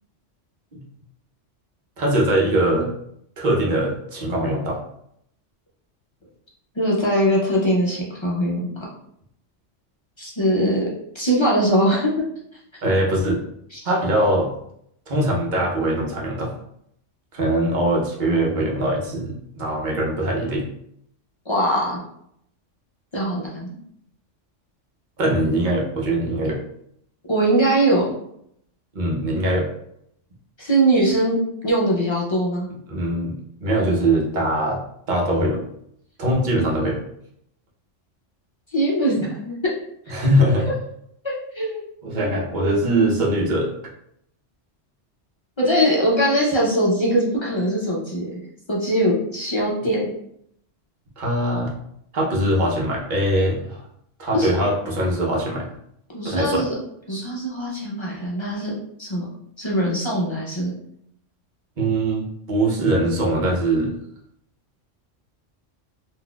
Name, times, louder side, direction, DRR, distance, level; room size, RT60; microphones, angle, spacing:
voice 1, 2.0-2.9 3.4-4.8 12.8-13.4 13.8-14.5 15.1-16.5 17.3-20.6 25.2-26.6 28.9-29.7 32.9-34.8 35.1-35.6 36.2-37.0 40.1-40.7 42.0-43.7 51.2-51.7 52.1-53.8 54.2-55.7 56.2-56.7 61.8-64.0, right 1 dB, 45° right, -2 dB, 0.8 m, -22 dB
voice 2, 6.8-8.6 10.2-12.1 13.7-13.8 21.5-22.0 23.1-23.7 27.3-28.1 30.6-31.4 31.6-32.7 38.7-39.7 41.2-41.8 45.6-48.2 48.7-50.1 54.3-54.6 56.1-56.7 57.1-58.7 59.0-59.3 59.6-60.7, right 1 dB, 35° left, -5 dB, 0.4 m, -21 dB
3.9 x 2.5 x 2.3 m, 0.72 s
omnidirectional pair, 1.3 m